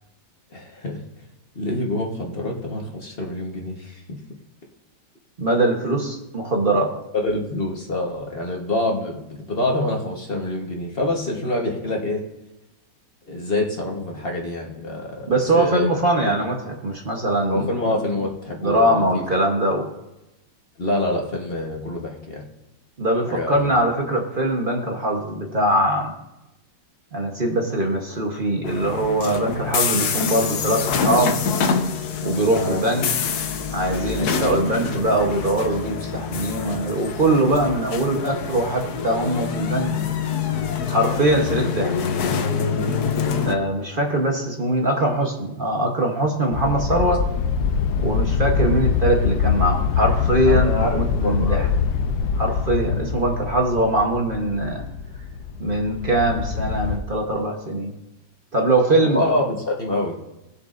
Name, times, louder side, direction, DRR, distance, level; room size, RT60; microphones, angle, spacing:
voice 1, 0.5-1.0 1.5-4.2 7.1-12.2 13.3-15.9 16.3-16.4 17.5-19.2 20.8-22.5 23.3-23.7 32.5-32.8 50.4-51.7 59.0-60.2, left 1 dB, 35° left, -1 dB, 1.2 m, -26 dB
voice 2, 5.4-6.9 15.3-17.7 18.6-19.9 23.0-26.1 27.1-31.3 32.2-33.1 33.7-39.9 40.9-41.9 43.5-47.2 48.0-51.7 52.3-54.8 55.6-57.9 58.5-59.2, right 1 dB, 35° right, 1 dB, 0.9 m, -22 dB
sound 1, 28.6-43.6, left 6 dB, 65° left, 1.1 m, -26 dB
sound 2, 46.5-57.0, left 6 dB, 85° left, 1.4 m, -24 dB
18.5 x 6.9 x 2.5 m, 0.95 s
omnidirectional pair, 2.1 m